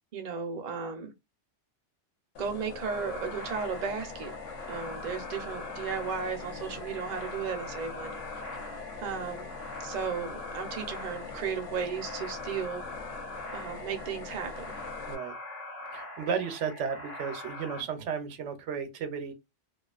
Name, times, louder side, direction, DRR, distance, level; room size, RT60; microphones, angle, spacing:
voice 1, 0.1-1.1 2.4-4.3 4.7-8.2 9.0-9.5 9.8-12.8 13.5-14.7, right 6 dB, 50° right, 0.6 m, -35 dB
sound 1, 2.3-15.1, left 5 dB, 85° left, 0.9 m, -43 dB
sound 2, 2.8-17.8, left 1 dB, 15° left, 0.7 m, -42 dB
voice 2, 15.9-19.3, right 6 dB, 80° right, 0.9 m, -34 dB
2.4 x 2.3 x 2.3 m
omnidirectional pair, 1.2 m